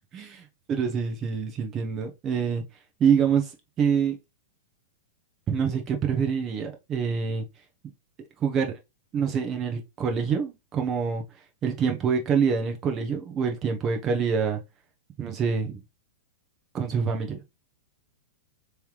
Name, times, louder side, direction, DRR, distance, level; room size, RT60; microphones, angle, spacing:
voice 1, 0.1-2.6 3.0-3.5 3.8-4.2 5.5-7.5 8.4-8.8 9.1-11.2 11.6-14.6 15.2-15.8 16.7-17.4, right 6 dB, 30° right, 1.2 m, -26 dB
3.4 x 3.2 x 3.1 m
hypercardioid pair, 105°, 0 cm